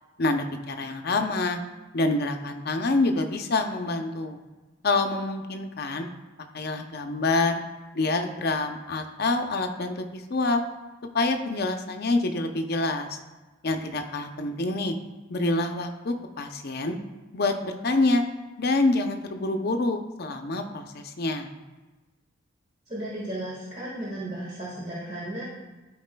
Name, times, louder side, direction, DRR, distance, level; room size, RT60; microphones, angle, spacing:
voice 1, 0.2-1.6 1.9-4.4 4.8-6.1 6.5-7.6 7.9-10.6 11.1-13.2 13.6-15.0 15.3-17.0 17.3-18.2 18.6-21.5, left 2 dB, 50° left, 6 dB, 0.6 m, -26 dB
voice 2, 22.9-25.4, right 1 dB, 35° right, -8 dB, 1.6 m, -34 dB
12.5 x 4.7 x 2.2 m, 1.2 s
head